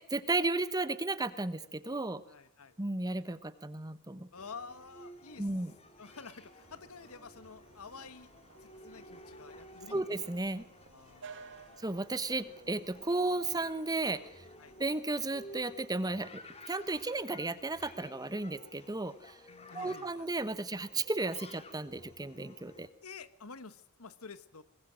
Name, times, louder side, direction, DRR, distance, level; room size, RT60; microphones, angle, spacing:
voice 1, 0.1-2.2 2.8-4.3 5.4-5.7 9.9-10.6 11.8-14.4 14.8-16.4 16.7-19.4 19.7-22.9, right 2 dB, 15° right, 14 dB, 1.1 m, -34 dB
voice 2, 2.3-2.8 4.3-5.5 6.0-8.3 8.6-10.0 10.9-11.8 14.6-14.8 19.5-20.3 23.0-24.6, left 5 dB, 70° left, 15 dB, 1.3 m, -50 dB
sound 1, 4.4-22.9, left 1 dB, 30° left, 2.6 m, -54 dB
sound 2, 6.6-15.0, right 5 dB, 55° right, 1.5 m, -56 dB
24.0 x 20.5 x 6.4 m, 0.70 s
head